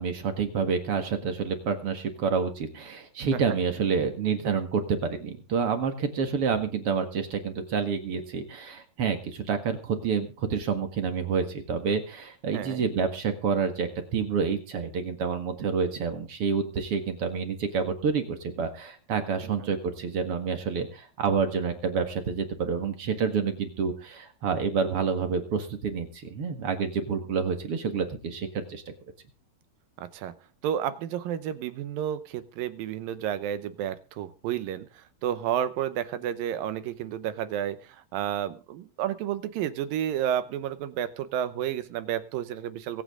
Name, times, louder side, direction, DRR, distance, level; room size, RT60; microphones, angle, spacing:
voice 1, 0.0-28.8, right 5 dB, 45° right, 7 dB, 2.1 m, -28 dB
voice 2, 12.5-12.8 19.6-19.7 30.0-30.3 30.6-43.0, right 10 dB, 75° right, 13 dB, 2.5 m, -31 dB
24.0 x 8.9 x 3.7 m, 0.34 s
omnidirectional pair, 4.5 m